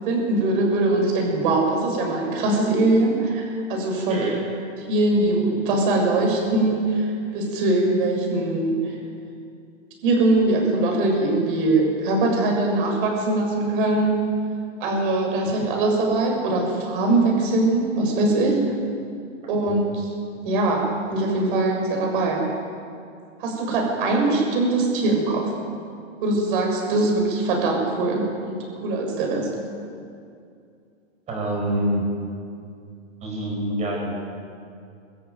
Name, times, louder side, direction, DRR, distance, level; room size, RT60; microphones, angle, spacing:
voice 1, 0.0-4.3 4.9-8.9 10.0-14.2 14.8-18.7 19.5-20.1 20.4-22.5 23.4-25.5 26.2-28.6 28.8-29.5, right 2 dB, 40° right, 1 dB, 6.8 m, -22 dB
voice 2, 4.1-4.4 15.4-15.6 19.7-19.8 31.3-32.0 33.2-34.3, right 1 dB, 15° right, -1 dB, 5.7 m, -26 dB
22.0 x 14.0 x 9.5 m, 2.4 s
hypercardioid pair, 160°, 39 cm